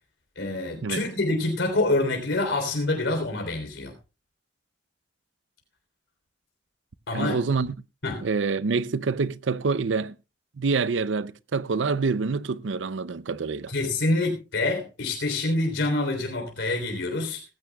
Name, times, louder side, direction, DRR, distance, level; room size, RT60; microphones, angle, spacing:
voice 1, 0.4-3.9 7.1-7.4 8.0-8.3 13.7-17.4, left 2 dB, 85° left, 3.5 m, -26 dB
voice 2, 7.1-7.7 8.2-10.2 10.6-13.7, right 4 dB, 85° right, 0.6 m, -26 dB
18.5 x 15.5 x 2.3 m
head